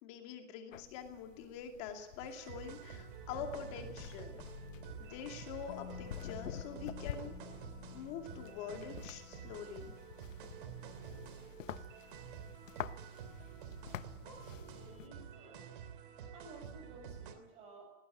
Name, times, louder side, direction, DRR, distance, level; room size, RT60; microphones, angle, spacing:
voice 1, 0.0-4.4 5.0-7.3 7.9-9.9, left 7 dB, 25° left, 4 dB, 2.6 m, -45 dB
sound 1, 0.7-15.1, left 10 dB, 90° left, 1.1 m, -49 dB
sound 2, 2.2-17.3, right 8 dB, 40° right, 3.1 m, -49 dB
Musical instrument, 5.7-13.6 13.9-14.0, left 7 dB, 50° left, 1.7 m, -56 dB
voice 2, 14.2-15.7 16.3-17.9, right 2 dB, 15° right, 3 dB, 7.0 m, -55 dB
20.0 x 19.0 x 9.4 m, 0.92 s
hypercardioid pair, 180°, 38 cm